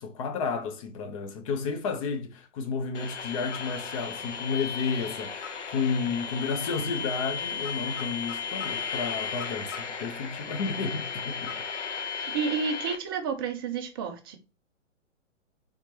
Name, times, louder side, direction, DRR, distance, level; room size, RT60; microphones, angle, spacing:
voice 1, 0.0-11.6, left 5 dB, 25° left, 0.6 m, -32 dB
sound 1, 2.9-13.0, left 6 dB, 70° left, 1.1 m, -35 dB
voice 2, 12.1-14.4, right 6 dB, 20° right, 0.4 m, -31 dB
4.4 x 3.7 x 2.8 m
figure-of-eight pair, 120°, 37 cm